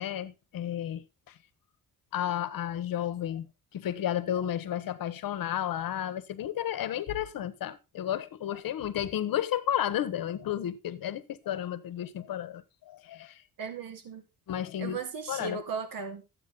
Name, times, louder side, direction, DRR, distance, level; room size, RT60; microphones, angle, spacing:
voice 1, 0.0-1.4 2.1-3.5 3.7-13.4 14.5-15.0 15.3-15.6, left 11 dB, 70° left, 1.2 m, -32 dB
voice 2, 13.6-14.2 14.8-16.2, right 5 dB, 70° right, 2.0 m, -36 dB
12.5 x 8.7 x 3.8 m
cardioid pair, 135°, 35 cm